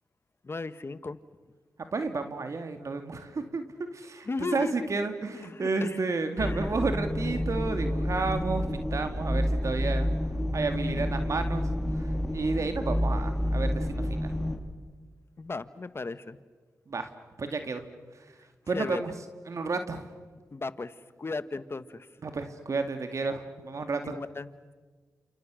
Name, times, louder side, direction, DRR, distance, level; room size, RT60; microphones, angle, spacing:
voice 1, 0.4-1.2 4.2-4.9 5.3-6.0 6.4-6.7 15.4-16.4 18.7-19.0 20.5-22.1 24.0-24.5, left 3 dB, 45° left, 13 dB, 1.5 m, -36 dB
voice 2, 1.9-3.6 3.9-10.1 10.5-11.6 12.0-12.1 12.3-14.3 16.9-17.1 17.4-17.8 18.7-19.1 19.5-20.0 22.2-24.1, right 3 dB, 60° right, 7 dB, 2.5 m, -31 dB
sound 1, 6.4-14.6, equal, 5° left, 4.6 m, -29 dB
30.0 x 28.5 x 6.5 m, 1.4 s
supercardioid pair, 45°, 6 cm